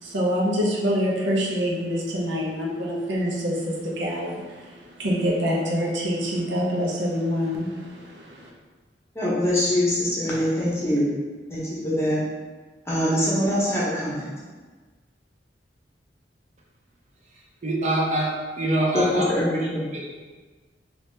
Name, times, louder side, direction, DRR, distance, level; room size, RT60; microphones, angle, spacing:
voice 1, 0.0-8.5, equal, 85° right, -3 dB, 0.7 m, -26 dB
voice 2, 9.1-11.1 11.5-12.2 12.9-14.3 18.9-19.8, equal, 15° left, -7 dB, 0.8 m, -23 dB
voice 3, 17.6-18.3 18.6-19.3, right 1 dB, 40° right, -3 dB, 0.6 m, -23 dB
3.0 x 2.7 x 3.3 m, 1.4 s
head